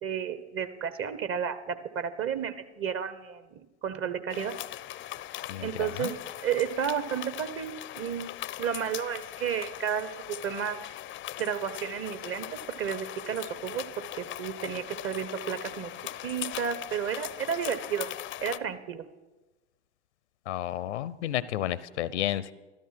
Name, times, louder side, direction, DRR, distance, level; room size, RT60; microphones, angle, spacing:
voice 1, 0.0-4.5 5.6-6.1 6.4-10.8 11.4-13.8 14.1-15.9 16.2-18.1 18.4-19.0, right 8 dB, 40° right, 12 dB, 1.2 m, -32 dB
sound 1, 4.3-18.6, left 14 dB, 35° left, 0.5 m, -40 dB
voice 2, 5.5-6.1 20.5-22.5, left 12 dB, 80° left, 19 dB, 0.7 m, -31 dB
13.0 x 13.0 x 5.9 m, 1.1 s
hypercardioid pair, 80°, 34 cm